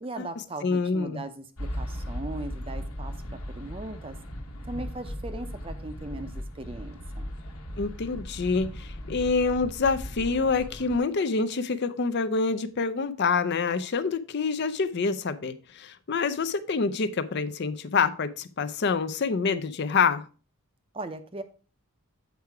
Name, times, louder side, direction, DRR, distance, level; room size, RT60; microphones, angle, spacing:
voice 1, 0.0-4.2 4.6-7.3 20.9-21.4, right 2 dB, 25° right, 0.6 m, -38 dB
voice 2, 0.6-1.2 7.8-20.2, left 4 dB, 50° left, 0.5 m, -27 dB
sound 1, 1.6-11.0, equal, 75° left, 1.3 m, -37 dB
8.1 x 4.7 x 4.6 m
head